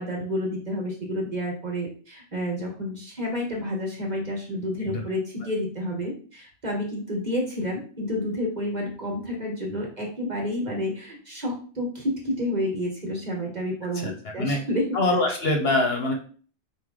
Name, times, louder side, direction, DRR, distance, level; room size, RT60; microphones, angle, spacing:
voice 1, 0.0-14.9, left 1 dB, 40° right, -1 dB, 1.2 m, -30 dB
voice 2, 14.9-16.1, left 2 dB, 60° left, 2 dB, 1.0 m, -23 dB
4.7 x 2.4 x 3.6 m, 0.42 s
omnidirectional pair, 1.2 m